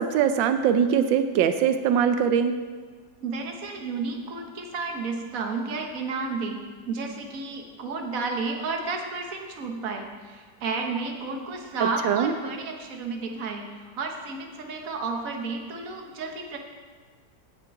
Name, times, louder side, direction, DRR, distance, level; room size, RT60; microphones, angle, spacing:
voice 1, 0.0-2.6 12.0-12.3, right 8 dB, 90° right, 9 dB, 1.4 m, -22 dB
voice 2, 3.2-6.6 6.8-16.6, right 4 dB, 50° right, 3 dB, 1.6 m, -32 dB
16.5 x 6.8 x 4.7 m, 1.5 s
omnidirectional pair, 2.0 m